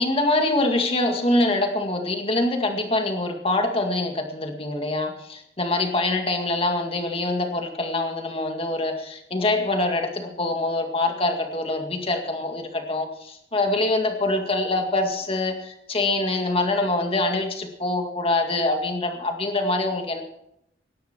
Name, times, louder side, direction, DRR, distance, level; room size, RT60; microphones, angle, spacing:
voice 1, 0.0-20.2, left 2 dB, 35° left, 4 dB, 2.0 m, -24 dB
18.0 x 12.0 x 4.5 m, 0.77 s
head